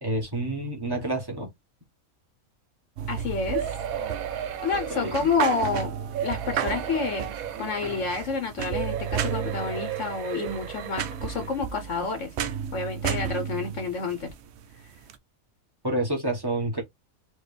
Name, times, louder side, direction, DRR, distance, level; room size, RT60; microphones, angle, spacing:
voice 1, 0.0-1.5 4.9-5.3 15.8-16.8, right 2 dB, 15° right, 1.3 m, -28 dB
sound 1, 3.0-15.2, right 8 dB, 65° right, 0.7 m, -33 dB
voice 2, 3.1-3.8 4.6-5.9 6.2-12.3 12.7-14.3, left 4 dB, 65° left, 1.2 m, -29 dB
sound 2, 3.5-5.7 6.1-8.3 8.7-11.6 12.1-12.2 12.5-12.6, right 10 dB, 80° right, 1.2 m, -35 dB
4.5 x 2.6 x 3.3 m
omnidirectional pair, 1.5 m